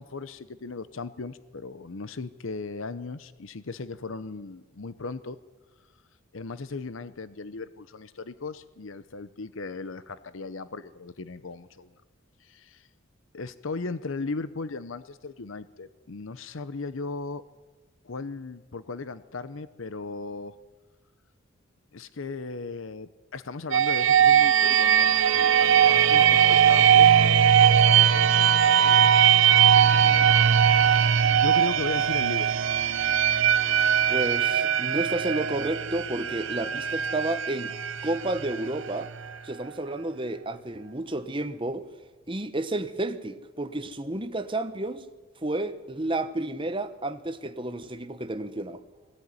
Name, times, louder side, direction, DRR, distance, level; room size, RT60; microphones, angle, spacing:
voice 1, 0.0-5.4 6.3-11.9 12.4-12.9 13.3-17.4 18.0-20.6 21.9-29.1 29.6-32.5 44.1-44.2, left 3 dB, 65° left, 0.7 m, -37 dB
sound 1, 23.7-39.3, right 9 dB, 65° right, 0.7 m, -20 dB
voice 2, 34.1-37.7 38.0-39.1 39.4-41.9 42.3-45.0 45.4-48.8, right 2 dB, 25° right, 1.1 m, -31 dB
21.0 x 16.0 x 9.7 m
head